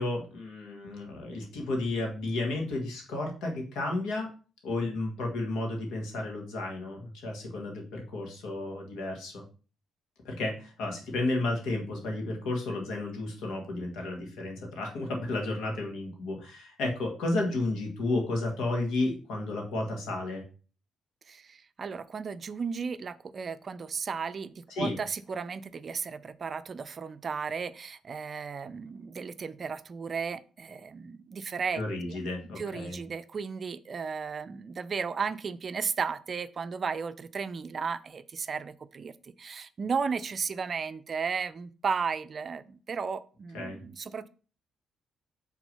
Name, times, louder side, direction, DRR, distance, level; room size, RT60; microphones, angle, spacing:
voice 1, 0.0-4.3 4.6-9.4 10.3-20.4 24.8-24.9 31.7-33.0 43.5-43.8, left 2 dB, 85° left, 1 dB, 2.0 m, -32 dB
voice 2, 21.3-32.2 32.6-44.3, right 5 dB, 45° right, 13 dB, 0.4 m, -34 dB
6.1 x 3.7 x 5.5 m, 0.37 s
cardioid pair, 90°, 0 cm